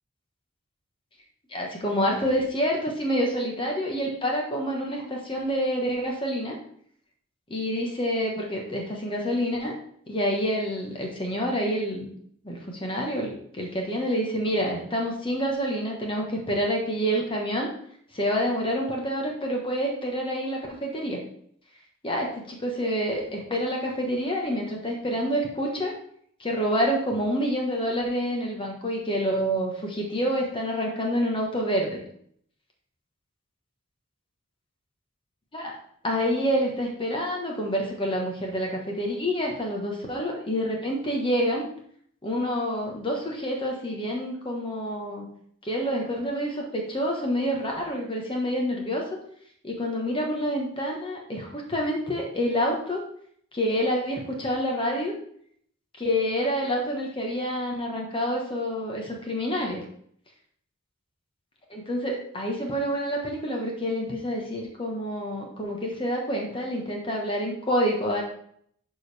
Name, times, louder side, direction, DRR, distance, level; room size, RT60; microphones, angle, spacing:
voice 1, 1.5-6.6 7.5-9.7 10.1-12.1 12.4-17.7 18.1-21.2 22.0-25.9 26.4-32.0 35.5-35.7 36.0-41.7 42.2-45.3 45.6-49.1 49.6-53.0 53.5-55.1 56.0-59.8 61.7-68.2, equal, 25° left, 0 dB, 1.3 m, -27 dB
11.5 x 4.8 x 3.4 m, 0.65 s
head